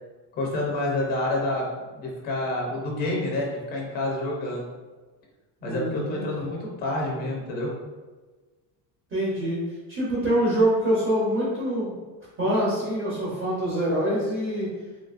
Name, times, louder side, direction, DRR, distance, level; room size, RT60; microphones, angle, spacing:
voice 1, 0.3-1.7 1.9-4.7 5.6-7.7, left 1 dB, 25° left, -2 dB, 0.4 m, -28 dB
voice 2, 5.6-6.2 9.1-9.6 9.9-11.9 12.4-14.7, right 1 dB, 25° right, -7 dB, 0.7 m, -25 dB
3.1 x 2.4 x 2.3 m, 1.3 s
cardioid pair, 170°, 42 cm